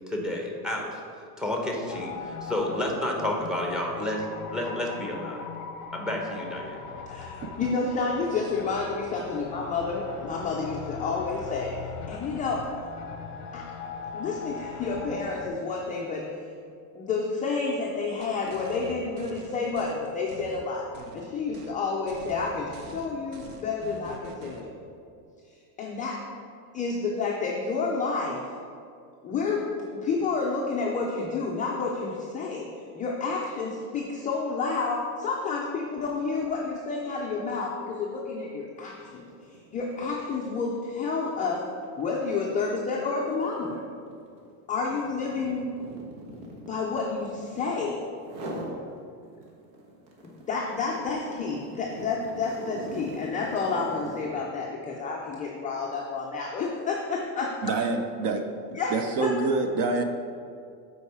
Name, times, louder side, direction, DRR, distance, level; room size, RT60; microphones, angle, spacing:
voice 1, 0.1-1.0 1.4-4.3 4.5-5.5 5.9-6.8, left 1 dB, ahead, 0 dB, 0.8 m, -30 dB
sound 1, 1.9-15.5, left 5 dB, 40° left, 0.7 m, -40 dB
voice 2, 7.1-12.6 13.5-13.7 14.1-16.3 16.9-20.8 21.1-24.7 25.8-26.2 26.7-28.4 29.2-32.7 32.9-39.3 39.7-41.6 42.0-43.8 44.7-45.7 46.7-48.0 50.5-57.7 58.7-58.9 59.2-59.3, left 4 dB, 20° left, -2 dB, 0.3 m, -30 dB
sound 2, 18.2-19.9 20.3-21.3 21.5-21.7 22.1-24.6, right 4 dB, 65° right, 1.1 m, -45 dB
sound 3, 38.8-39.0 39.3-47.8 48.2-48.8 49.2-54.4, right 1 dB, 90° right, 1.6 m, -42 dB
voice 3, 57.6-58.4 58.9-60.0, right 4 dB, 45° right, 6 dB, 0.6 m, -26 dB
8.3 x 4.6 x 4.7 m, 2.4 s
cardioid pair, 145°, 49 cm